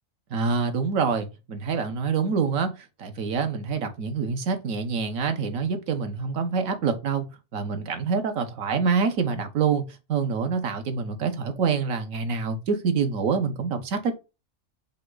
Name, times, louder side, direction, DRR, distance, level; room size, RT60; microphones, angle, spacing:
voice 1, 0.3-2.7 3.0-7.3 7.5-9.8 10.1-14.2, right 5 dB, 80° right, 1.3 m, -26 dB
5.5 x 2.3 x 3.8 m
omnidirectional pair, 1.4 m